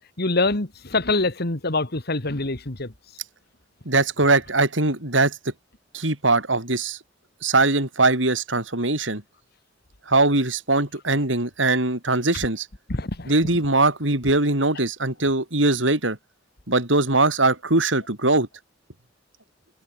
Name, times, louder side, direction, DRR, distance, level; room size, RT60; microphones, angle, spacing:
voice 1, 0.2-2.9 12.9-13.3, left 2 dB, 55° left, 2.2 m, -25 dB
voice 2, 3.9-5.4 5.9-7.0 7.4-9.2 10.1-12.7 13.3-16.2 16.7-18.5, right 2 dB, 75° right, 5.1 m, -21 dB
head